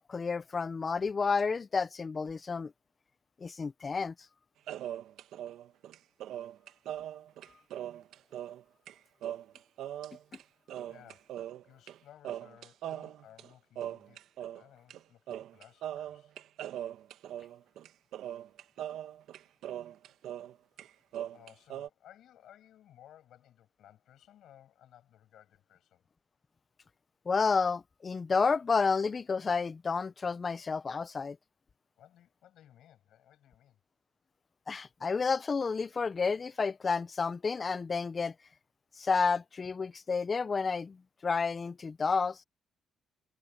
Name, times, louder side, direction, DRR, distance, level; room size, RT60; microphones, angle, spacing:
voice 1, 0.0-2.7 3.4-4.1 27.3-31.4 34.7-38.3 39.0-41.0 41.2-42.4, left 5 dB, 35° left, 0.6 m, -30 dB
sound 1, 4.7-8.6 8.9-9.0 9.2-10.4 10.7-12.0 12.2-14.6 14.9-15.0 15.3-20.5 20.8-21.9, right 11 dB, 80° right, 1.6 m, -40 dB
voice 2, 10.9-11.4 11.6-16.4 21.3-26.0 32.0-33.8 39.0-39.1, left 11 dB, 75° left, 7.3 m, -59 dB
cardioid pair, 90°, 0 cm